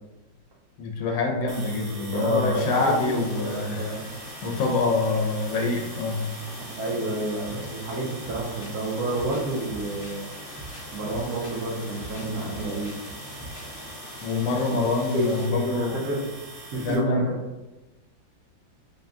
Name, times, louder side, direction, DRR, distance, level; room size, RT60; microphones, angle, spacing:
voice 1, 0.8-4.0 4.4-6.3 7.5-7.6 14.2-16.0 16.7-17.3, left 3 dB, 80° left, 1 dB, 1.4 m, -25 dB
sound 1, 1.5-17.0, right 3 dB, 80° right, 1.6 m, -43 dB
voice 2, 1.9-4.1 6.5-10.3 10.9-12.9 15.1-16.2 16.7-17.2, right 1 dB, 60° right, -3 dB, 1.1 m, -30 dB
sound 2, 2.5-15.5, left 3 dB, 65° left, 0.9 m, -43 dB
sound 3, 7.4-7.7 8.0-14.2 14.6-14.7 15.0-15.2, right 1 dB, 10° left, 0.9 m, -45 dB
3.9 x 2.3 x 3.5 m, 1.0 s
omnidirectional pair, 2.0 m